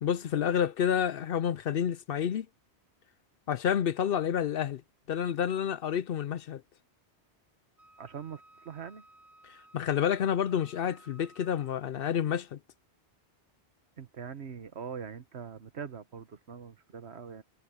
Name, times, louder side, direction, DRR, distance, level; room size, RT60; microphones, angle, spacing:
voice 1, 0.0-2.5 3.5-4.8 5.1-6.6 9.4-12.6, left 8 dB, 65° left, 0.7 m, -29 dB
Wind instrument woodwind instrument, 7.8-12.0, right 1 dB, 50° right, 7.6 m, -58 dB
voice 2, 8.0-9.0 14.0-17.4, right 7 dB, 70° right, 1.4 m, -42 dB
omnidirectional pair, 1.1 m